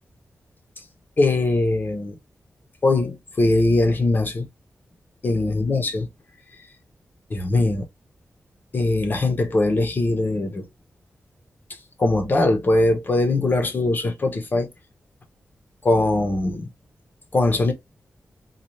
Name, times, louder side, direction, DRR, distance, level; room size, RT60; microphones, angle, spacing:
voice 1, 1.2-2.2 2.8-4.5 5.2-6.1 7.3-7.9 8.7-10.6 12.0-14.7 15.8-16.7 17.3-17.7, left 2 dB, 40° left, 1.1 m, -21 dB
4.1 x 2.6 x 3.1 m
wide cardioid pair, 140°, 5 cm